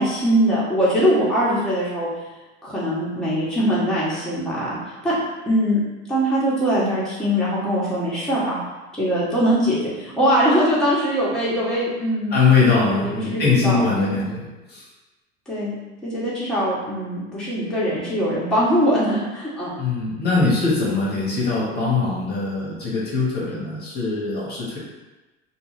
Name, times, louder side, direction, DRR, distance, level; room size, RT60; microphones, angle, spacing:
voice 1, 0.0-2.1 2.6-4.8 5.0-5.1 5.5-5.8 6.1-8.6 9.0-12.4 12.7-14.0 15.5-15.8 16.0-19.7, equal, ahead, -9 dB, 0.9 m, -22 dB
voice 2, 12.3-14.4 14.7-14.8 19.8-24.8, left 4 dB, 30° left, -6 dB, 1.0 m, -21 dB
2.4 x 2.3 x 3.2 m, 1.1 s
hypercardioid pair, 80°, 34 cm